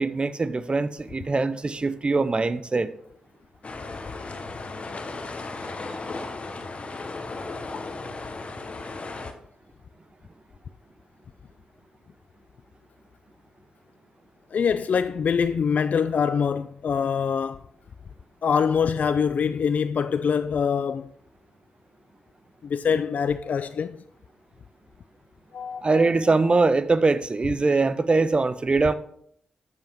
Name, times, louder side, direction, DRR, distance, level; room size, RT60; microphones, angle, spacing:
voice 1, 0.0-2.9 25.8-28.9, right 3 dB, 35° right, 0.6 m, -22 dB
sound 1, 3.6-9.3, left 3 dB, 45° left, 1.1 m, -35 dB
voice 2, 14.5-17.6 18.4-21.1 22.6-24.0 25.5-26.1, left 6 dB, 60° left, 0.3 m, -24 dB
8.0 x 7.0 x 3.6 m
supercardioid pair, 45°, 3 cm